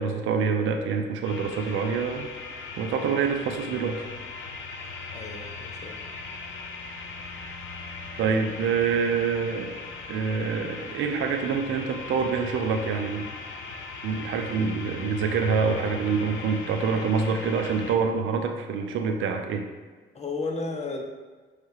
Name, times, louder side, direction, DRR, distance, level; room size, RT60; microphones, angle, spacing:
voice 1, 0.0-2.3 2.8-4.0 8.2-9.7 10.1-13.3 14.0-19.7, right 5 dB, 80° right, 5 dB, 0.7 m, -26 dB
sound 1, 1.2-18.0, left 4 dB, 80° left, 0.9 m, -39 dB
voice 2, 5.1-6.0 20.1-21.0, left 3 dB, 35° left, 2 dB, 1.1 m, -33 dB
6.6 x 3.3 x 4.7 m, 1.4 s
cardioid pair, 90°, 20 cm